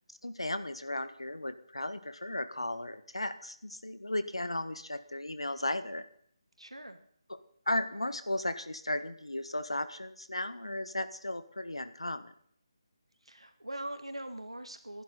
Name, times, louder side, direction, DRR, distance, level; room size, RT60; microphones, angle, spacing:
voice 1, 0.2-6.0 7.7-12.3, left 1 dB, 85° left, 11 dB, 1.5 m, -35 dB
voice 2, 6.6-7.0 13.2-15.0, right 1 dB, 90° right, 8 dB, 2.2 m, -42 dB
22.5 x 11.0 x 4.1 m, 0.63 s
figure-of-eight pair, 155°, 3 cm